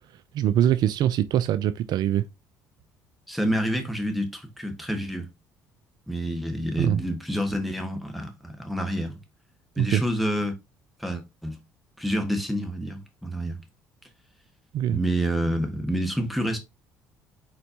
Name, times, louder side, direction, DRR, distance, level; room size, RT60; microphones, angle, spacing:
voice 1, 0.3-2.2 6.8-7.0 9.8-10.0 14.7-15.0, right 11 dB, 65° right, 0.3 m, -23 dB
voice 2, 3.3-5.3 6.1-9.1 9.8-10.5 11.0-11.6 12.0-13.6 14.9-16.6, equal, ahead, 1.5 m, -28 dB
4.3 x 4.2 x 2.8 m
supercardioid pair, 70°, 8 cm